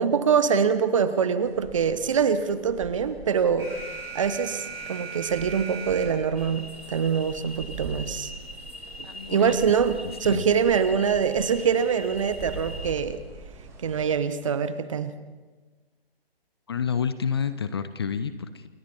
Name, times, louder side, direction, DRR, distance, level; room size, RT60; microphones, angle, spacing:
voice 1, 0.0-3.8 4.1-8.3 9.3-13.2 13.8-15.1, right 6 dB, 30° right, 13 dB, 1.1 m, -24 dB
sound 1, 1.4-14.1, right 2 dB, 10° right, 2.2 m, -44 dB
Alarm, 3.6-6.6, right 5 dB, 70° right, 7.5 m, -38 dB
sound 2, 6.4-12.9, left 1 dB, 90° left, 2.6 m, -42 dB
voice 2, 9.0-9.6 10.0-10.4 16.7-18.7, left 7 dB, 25° left, 12 dB, 0.7 m, -29 dB
28.5 x 22.5 x 4.2 m, 1.4 s
figure-of-eight pair, 140°, 30 cm